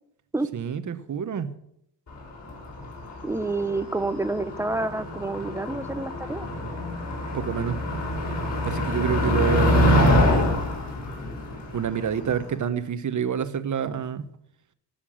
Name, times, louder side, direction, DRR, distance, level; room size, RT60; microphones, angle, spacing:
voice 1, 0.5-1.5 7.3-7.8 8.6-10.7 11.7-14.2, right 7 dB, 40° right, 12 dB, 1.2 m, -27 dB
Motor vehicle (road), 2.1-12.5, left 1 dB, 35° left, 5.9 m, -25 dB
voice 2, 3.2-6.5 9.2-10.1, right 2 dB, 5° right, 13 dB, 0.8 m, -29 dB
16.5 x 7.1 x 8.8 m, 0.75 s
cardioid pair, 130°, 45 cm